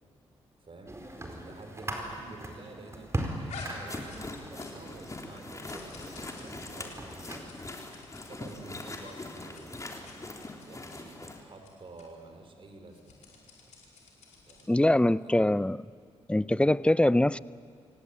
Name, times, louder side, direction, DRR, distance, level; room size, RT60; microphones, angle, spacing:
voice 1, 0.6-0.9 1.4-7.5 8.3-10.1 10.7-13.7 14.5-15.4, right 3 dB, 45° right, 5 dB, 4.9 m, -50 dB
sound 1, 0.9-7.5, right 1 dB, 25° right, 4.6 m, -40 dB
sound 2, 3.5-5.0 5.2-8.5 9.0-9.2 9.4-9.6 9.9-10.2 10.6-11.0 11.6-11.7 12.0-12.1 12.9-14.7, left 4 dB, 75° left, 4.8 m, -49 dB
sound 3, 3.8-11.4, left 2 dB, 25° left, 3.8 m, -42 dB
voice 2, 14.7-15.8 16.3-17.4, left 1 dB, 10° left, 19 dB, 0.6 m, -23 dB
28.0 x 17.5 x 8.8 m, 2.1 s
supercardioid pair, 45°, 12 cm